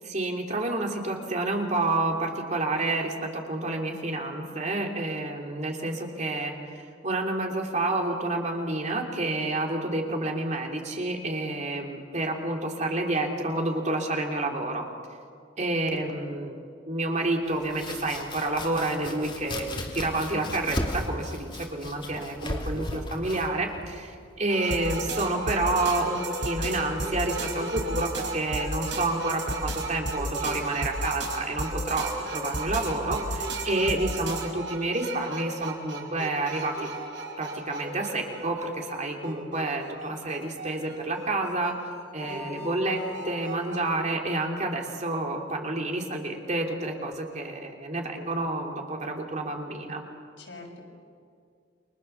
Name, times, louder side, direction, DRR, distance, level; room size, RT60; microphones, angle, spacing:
voice 1, 0.0-14.8 15.6-16.6 16.9-36.9 37.4-41.7 42.1-50.0, right 2 dB, 40° right, 2 dB, 3.3 m, -29 dB
Domestic sounds home sounds, 17.4-25.2, left 1 dB, 25° left, 3.2 m, -36 dB
sound 1, 24.5-43.9, right 1 dB, 70° right, 5.6 m, -34 dB
voice 2, 42.2-42.7 50.4-50.8, left 2 dB, 70° left, 0 dB, 6.8 m, -45 dB
29.0 x 25.0 x 7.2 m, 2.3 s
head